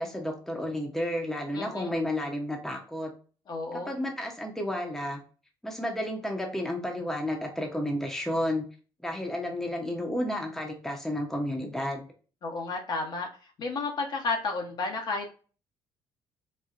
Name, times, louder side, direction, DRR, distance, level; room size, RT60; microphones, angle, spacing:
voice 1, 0.0-3.1 3.7-5.2 5.6-8.7 9.0-12.1, left 1 dB, 5° left, 1 dB, 0.8 m, -31 dB
voice 2, 1.5-1.9 3.5-4.0 12.4-13.3 13.6-15.3, left 3 dB, 50° left, 2 dB, 0.8 m, -32 dB
4.2 x 2.1 x 2.4 m, 0.38 s
cardioid pair, 100°, 9 cm